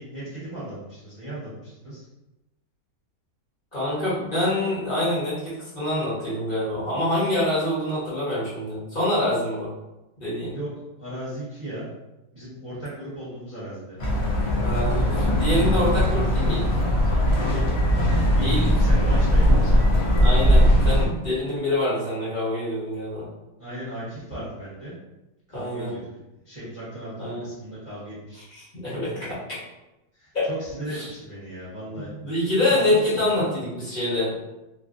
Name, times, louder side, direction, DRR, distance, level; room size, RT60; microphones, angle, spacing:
voice 1, 0.0-2.1 10.5-10.7 11.0-11.9 12.3-14.0 17.4-17.8 18.3-19.9 23.6-24.9 25.5-26.0 26.4-28.6 30.1-32.1 32.7-33.3, right 1 dB, 20° right, -12 dB, 1.0 m, -36 dB
voice 2, 3.7-9.7 10.2-10.5 14.6-16.7 18.4-18.7 20.2-23.3 25.5-25.9 27.2-27.5 28.5-29.6 30.3-30.5 30.9-31.1 31.9-34.4, left 1 dB, 30° left, -10 dB, 1.3 m, -26 dB
sound 1, 14.0-21.1, equal, 55° left, 0.8 m, -19 dB
3.2 x 2.5 x 2.5 m, 0.97 s
omnidirectional pair, 1.8 m